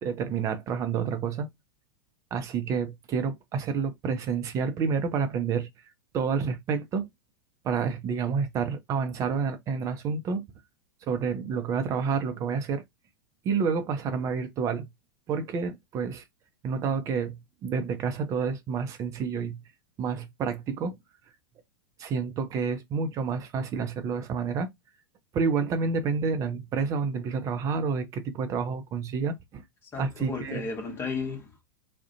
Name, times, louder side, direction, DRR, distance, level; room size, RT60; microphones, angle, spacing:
voice 1, 0.0-1.5 2.3-5.7 6.1-7.1 7.6-10.4 11.1-12.8 13.4-14.8 15.3-16.2 16.6-19.6 20.0-20.9 22.0-24.7 25.3-29.6 30.0-30.6, right 5 dB, 30° right, 0.5 m, -29 dB
voice 2, 29.9-31.7, left 4 dB, 20° left, 0.9 m, -34 dB
2.4 x 2.1 x 2.6 m
figure-of-eight pair, 90°, 11 cm